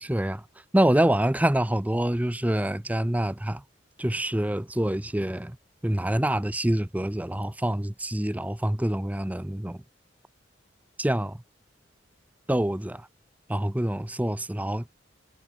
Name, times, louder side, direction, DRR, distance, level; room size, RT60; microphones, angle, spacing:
voice 1, 0.0-0.4 0.7-3.6 4.0-5.6 5.8-9.8 11.0-11.4 12.5-13.0 13.5-14.9, right 1 dB, 10° right, 0.6 m, -26 dB
head